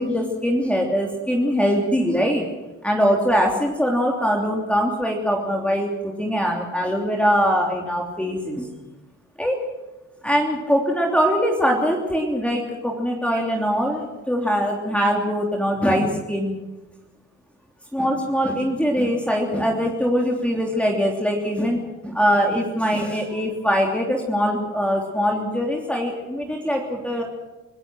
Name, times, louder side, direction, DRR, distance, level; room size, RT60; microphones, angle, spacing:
voice 1, 0.0-2.5 2.8-8.7 9.4-9.6 10.2-16.6 17.9-27.2, equal, 5° left, 0 dB, 3.1 m, -22 dB
25.5 x 16.0 x 6.3 m, 1.1 s
cardioid pair, 90°, 30 cm